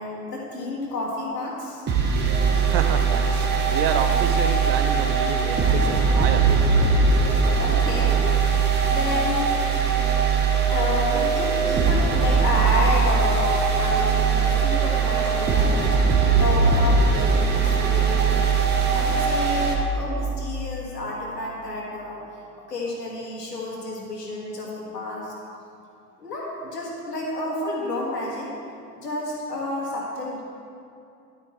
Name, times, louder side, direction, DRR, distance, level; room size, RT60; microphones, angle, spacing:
voice 1, 0.0-1.8 7.2-8.3 8.9-9.5 10.7-15.9 16.4-18.5 18.9-22.2 22.7-25.3 26.2-28.5 28.9-30.4, left 2 dB, 80° left, -3 dB, 2.2 m, -30 dB
sound 1, 1.9-19.8, right 5 dB, 20° right, 1.0 m, -20 dB
voice 2, 2.6-6.5, right 7 dB, 40° right, 8 dB, 0.6 m, -29 dB
12.0 x 8.9 x 3.2 m, 2.6 s
figure-of-eight pair, 85°, 48 cm